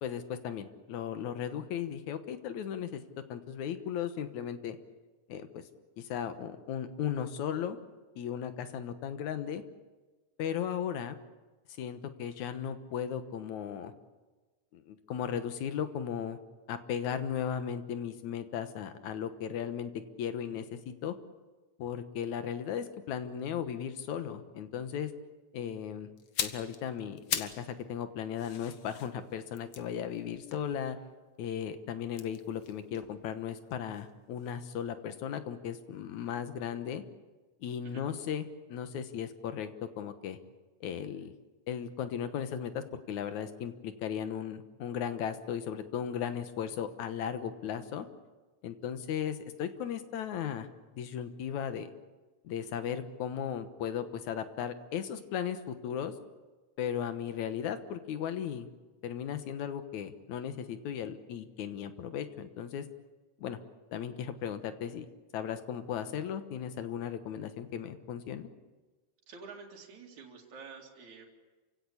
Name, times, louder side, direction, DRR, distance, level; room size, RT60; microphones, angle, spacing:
voice 1, 0.0-3.0 3.3-4.8 5.3-5.6 6.0-7.8 8.2-9.6 10.4-11.2 11.8-13.9 14.7-16.4 16.7-21.1 21.8-25.1 25.5-26.1 26.4-31.0 31.4-37.0 37.6-40.4 40.8-41.3 41.7-48.1 48.6-50.7 50.9-51.9 52.4-56.1 56.8-58.7 59.0-62.9 63.4-63.6 63.9-65.1 65.3-68.5, left 8 dB, 80° left, 10 dB, 2.6 m, -36 dB
sound 1, 26.2-27.7 28.0-31.3 32.1-34.1 34.4-34.6, left 8 dB, 55° left, 1.6 m, -40 dB
voice 2, 69.3-71.3, right 5 dB, 75° right, -1 dB, 3.8 m, -49 dB
28.0 x 17.0 x 8.6 m, 1.2 s
omnidirectional pair, 3.3 m